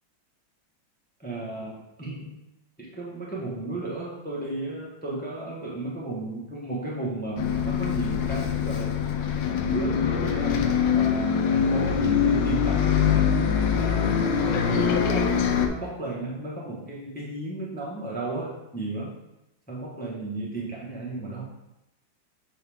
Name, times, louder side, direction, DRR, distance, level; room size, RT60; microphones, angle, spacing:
voice 1, 1.2-2.4 2.8-9.0 9.7-13.3 13.7-19.2 19.7-21.4, right 2 dB, 10° left, -4 dB, 0.6 m, -34 dB
Bus, 7.4-15.7, left 7 dB, 70° left, 1.1 m, -23 dB
7.7 x 3.5 x 3.5 m, 0.92 s
omnidirectional pair, 2.2 m